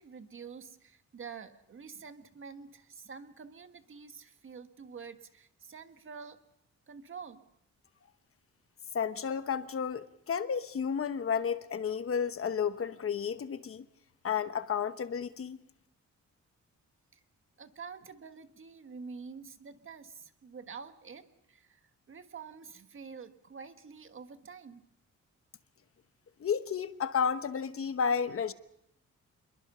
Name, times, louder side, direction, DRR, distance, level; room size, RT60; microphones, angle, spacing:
voice 1, 0.0-6.4 6.9-7.4 17.6-21.8 22.1-24.8, right 5 dB, 45° right, 1.6 m, -47 dB
voice 2, 8.9-13.8 14.2-15.6 26.4-28.5, left 7 dB, 50° left, 1.0 m, -32 dB
27.5 x 22.0 x 5.6 m
wide cardioid pair, 135°, 30 cm